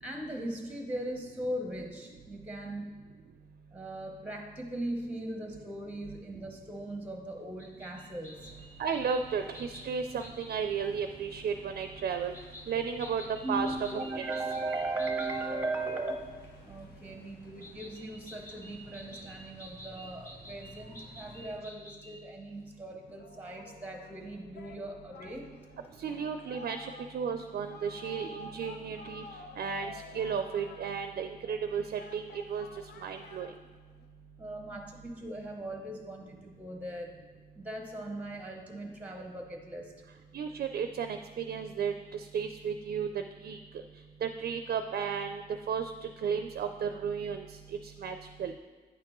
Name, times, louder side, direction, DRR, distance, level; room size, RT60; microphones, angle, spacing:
voice 1, 0.0-2.9 3.7-8.5 13.4-16.2 16.6-25.5 34.4-37.2 37.6-39.9, right 2 dB, 10° right, 3 dB, 0.8 m, -38 dB
sound 1, 7.6-10.8 12.3-15.4 17.6-22.2, equal, 15° left, 1.1 m, -50 dB
sound 2, 8.3-21.6, left 1 dB, 70° left, 1.4 m, -55 dB
voice 2, 8.8-12.3 12.7-13.2 13.5-13.7 14.2-14.3 26.0-29.2 29.6-32.7 33.0-33.5 40.3-43.1 43.4-43.6 44.2-48.5, right 6 dB, 65° right, 7 dB, 0.4 m, -34 dB
Singing, 23.1-34.1, left 3 dB, 85° left, 0.6 m, -51 dB
9.1 x 5.8 x 3.0 m, 1.4 s
wide cardioid pair, 125°, 17 cm